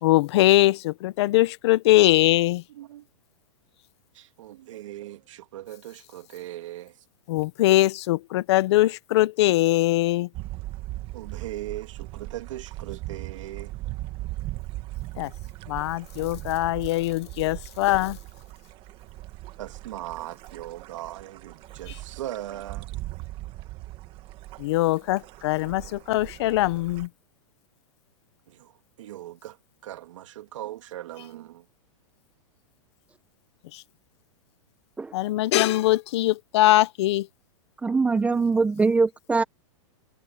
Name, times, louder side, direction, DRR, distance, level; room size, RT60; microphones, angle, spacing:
voice 1, 0.0-2.6 7.3-10.3 15.2-15.3 15.7-18.2 21.9-22.0 24.6-27.1 33.7-33.8 35.1-37.3, left 16 dB, 55° left, 0.8 m, -22 dB
voice 2, 2.7-3.1 4.1-7.0 11.1-13.7 19.6-22.9 25.8-25.9 28.5-29.6 29.8-31.6, right 13 dB, 70° right, 3.2 m, -39 dB
sound 1, 10.3-27.1, right 17 dB, 30° right, 1.7 m, -39 dB
voice 3, 37.8-39.4, right 4 dB, 10° right, 1.0 m, -22 dB
supercardioid pair, 150°, 17 cm